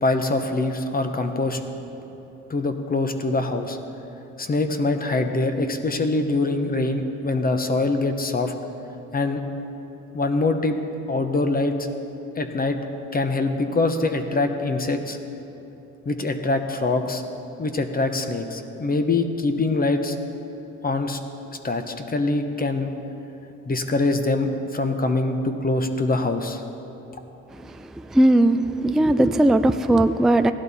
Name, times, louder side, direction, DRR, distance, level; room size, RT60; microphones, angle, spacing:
voice 1, 0.0-1.6 2.5-3.8 4.4-8.5 9.1-9.4 10.1-10.8 11.1-11.8 12.4-12.8 13.1-15.2 16.1-17.2 17.6-20.2 20.8-21.2 21.6-22.9 23.7-26.6, left 2 dB, 30° left, 7 dB, 0.9 m, -24 dB
voice 2, 27.5-30.5, right 1 dB, ahead, 9 dB, 0.3 m, -19 dB
15.5 x 11.5 x 4.2 m, 3.0 s
cardioid pair, 90°, 30 cm